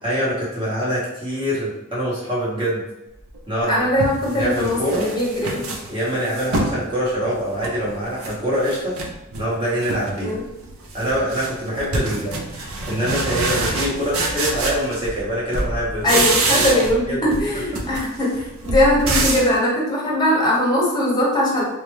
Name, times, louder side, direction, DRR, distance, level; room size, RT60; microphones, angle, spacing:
voice 1, 0.0-2.8 3.5-3.9 4.3-5.1 5.9-9.0 9.4-10.4 10.9-16.1 16.5-16.8 17.1-17.2 17.7-17.8, equal, 25° right, -8 dB, 1.4 m, -24 dB
sound 1, 3.3-3.4 4.0-6.8 7.2-8.3 8.6-9.5 9.8-10.2 10.5-15.3 15.5-17.0 17.3-19.5, right 2 dB, 90° right, 0.6 m, -25 dB
voice 2, 3.7-5.8 10.2-10.4 16.0-21.7, left 1 dB, 20° left, -4 dB, 1.0 m, -20 dB
3.3 x 2.9 x 3.2 m, 0.92 s
head